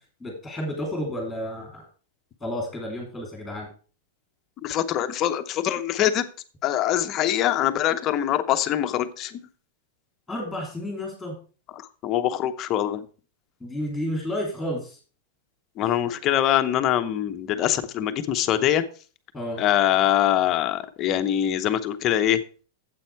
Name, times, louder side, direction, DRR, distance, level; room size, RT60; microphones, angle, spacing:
voice 1, 0.2-1.8 2.4-3.7 10.3-11.4 13.6-15.0 15.8-16.0 19.3-19.6, left 1 dB, ahead, 0 dB, 2.7 m, -31 dB
voice 2, 4.6-6.2 6.6-9.4 12.0-13.1 15.8-18.8 19.6-22.4, left 11 dB, 25° left, 9 dB, 0.7 m, -23 dB
8.9 x 7.7 x 4.6 m, 0.38 s
supercardioid pair, 170°, 0 cm